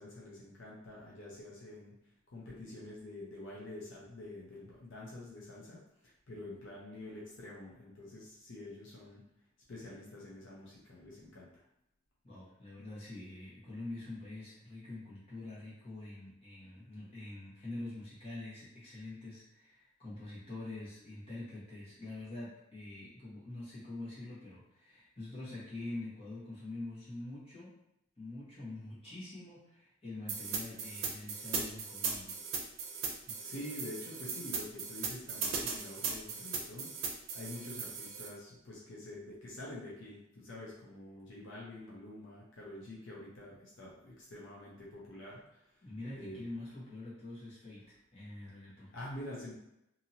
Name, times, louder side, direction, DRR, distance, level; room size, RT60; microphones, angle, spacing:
voice 1, 0.0-1.9 2.3-9.2 9.7-11.6 33.4-36.9 37.3-45.6 46.1-46.7 48.9-49.5, left 1 dB, 75° left, -5 dB, 0.7 m, -47 dB
voice 2, 12.2-27.7 28.2-32.4 33.3-33.4 45.8-48.9, left 2 dB, 30° left, -9 dB, 1.3 m, -45 dB
sound 1, 30.3-38.3, right 5 dB, 90° right, 0.5 m, -38 dB
2.8 x 2.7 x 2.7 m, 0.83 s
head